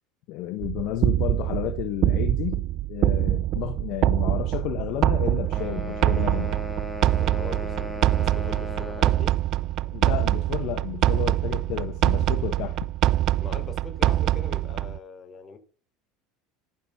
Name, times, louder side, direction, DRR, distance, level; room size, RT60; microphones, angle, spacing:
voice 1, 0.3-6.6 9.9-12.9, left 13 dB, 60° left, 1.0 m, -32 dB
sound 1, 0.6-15.0, right 14 dB, 50° right, 0.4 m, -24 dB
sound 2, 5.5-9.3, equal, 5° left, 2.8 m, -36 dB
voice 2, 7.2-9.3 13.4-15.6, left 4 dB, 30° left, 3.3 m, -41 dB
11.5 x 6.7 x 5.7 m
supercardioid pair, 100°, 0 cm